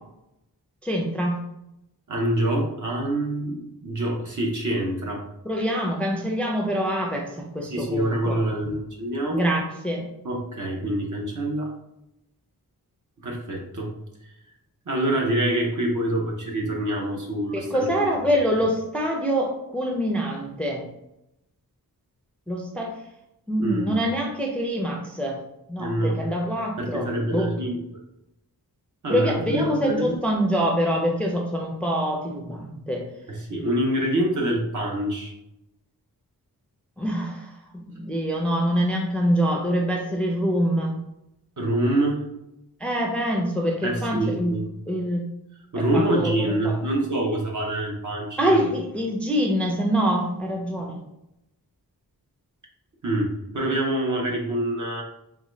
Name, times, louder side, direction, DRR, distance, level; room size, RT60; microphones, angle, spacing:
voice 1, 0.8-1.4 5.4-8.4 9.3-10.0 17.5-20.8 22.5-22.9 23.5-25.4 25.7-27.5 29.1-33.0 37.0-40.9 42.8-44.5 44.9-45.2 45.8-46.8 48.4-51.0, equal, 5° left, 0 dB, 0.4 m, -25 dB
voice 2, 2.1-3.6 3.8-5.2 7.7-9.5 10.2-11.7 13.2-13.9 14.9-18.1 23.6-24.0 25.8-26.2 26.8-27.8 29.0-30.2 33.3-35.3 41.6-42.2 43.8-44.7 45.7-48.6 53.0-53.3 53.5-55.0, right 1 dB, 50° right, 0 dB, 0.8 m, -25 dB
3.7 x 2.2 x 3.1 m, 0.84 s
wide cardioid pair, 120°, 37 cm